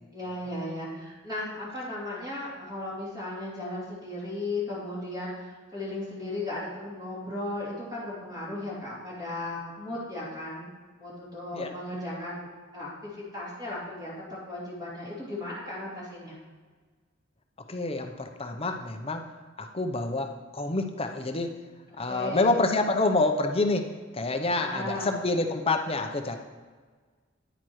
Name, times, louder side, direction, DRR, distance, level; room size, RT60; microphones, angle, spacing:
voice 1, 0.1-10.7 11.0-16.4 21.9-22.6 24.6-25.2, left 2 dB, 20° right, -8 dB, 2.9 m, -36 dB
voice 2, 17.7-19.2 19.6-21.5 22.0-23.9 24.1-26.4, left 2 dB, 30° left, 5 dB, 0.7 m, -27 dB
10.0 x 9.0 x 3.1 m, 1.5 s
head